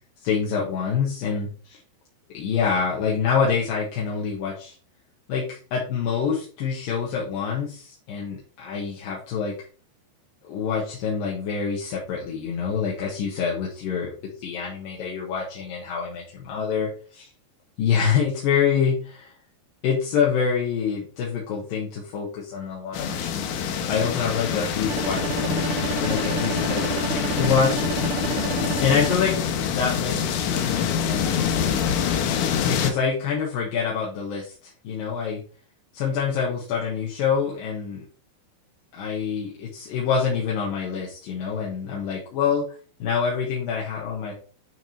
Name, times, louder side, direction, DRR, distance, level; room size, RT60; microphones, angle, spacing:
voice 1, 0.2-1.8 2.3-4.8 5.3-9.5 10.5-17.3 17.8-19.3 19.8-23.5 23.9-25.6 25.9-27.8 28.8-29.3 29.7-31.7 32.6-35.4 35.9-38.0 38.9-42.6 43.0-44.3, left 6 dB, 65° left, -3 dB, 2.6 m, -26 dB
sound 1, 22.9-32.9, left 8 dB, 90° left, 3.5 m, -25 dB
sound 2, 24.9-29.2, right 9 dB, 75° right, 2.6 m, -31 dB
9.4 x 3.5 x 4.2 m, 0.40 s
omnidirectional pair, 5.3 m